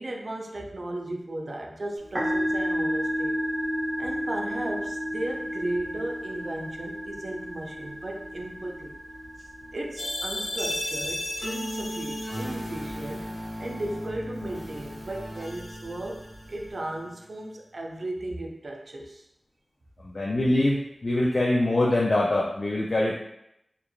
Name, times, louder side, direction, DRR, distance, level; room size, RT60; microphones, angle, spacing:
voice 1, 0.0-3.4 4.0-8.9 9.4-19.2, right 1 dB, 60° right, 1 dB, 0.4 m, -36 dB
Musical instrument, 2.0-16.7, equal, 20° right, 1.1 m, -34 dB
sound 1, 10.0-16.7, left 1 dB, 80° left, 0.9 m, -34 dB
voice 2, 20.0-23.1, left 1 dB, 55° left, -4 dB, 0.3 m, -24 dB
2.8 x 2.2 x 2.3 m, 0.80 s
wide cardioid pair, 80°, 0 cm